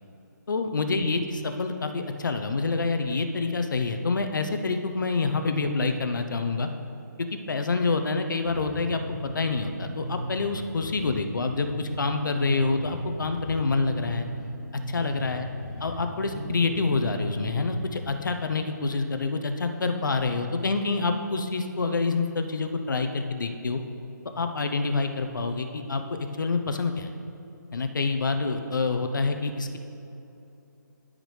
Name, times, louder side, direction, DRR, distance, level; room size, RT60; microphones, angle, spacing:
voice 1, 0.5-6.7 7.3-14.3 14.9-15.5 15.8-23.8 24.4-27.1 27.7-29.8, left 3 dB, 80° left, 6 dB, 0.7 m, -27 dB
Bass guitar, 8.5-18.1, right 1 dB, 10° left, 1.4 m, -37 dB
13.5 x 5.1 x 3.2 m, 2.9 s
hypercardioid pair, 175°, 10 cm